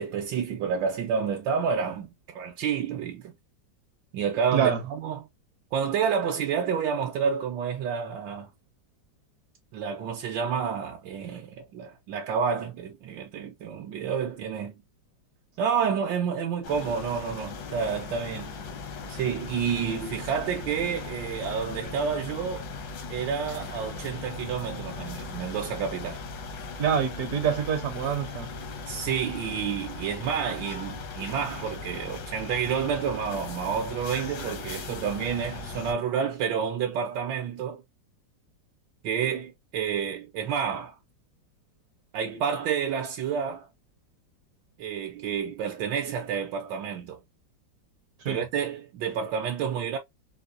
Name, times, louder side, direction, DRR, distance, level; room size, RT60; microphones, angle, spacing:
voice 1, 0.0-3.3 4.1-5.3 5.7-8.5 9.7-14.8 15.6-18.5 19.1-22.7 23.1-26.2 28.9-37.8 39.0-40.9 42.1-43.7 44.8-47.2 48.3-50.0, right 7 dB, 80° right, 1.4 m, -29 dB
sound 1, 16.6-35.9, left 4 dB, 80° left, 1.6 m, -38 dB
voice 2, 26.8-28.5 48.2-48.4, right 8 dB, 60° right, 1.2 m, -26 dB
4.7 x 2.2 x 2.5 m
omnidirectional pair, 2.0 m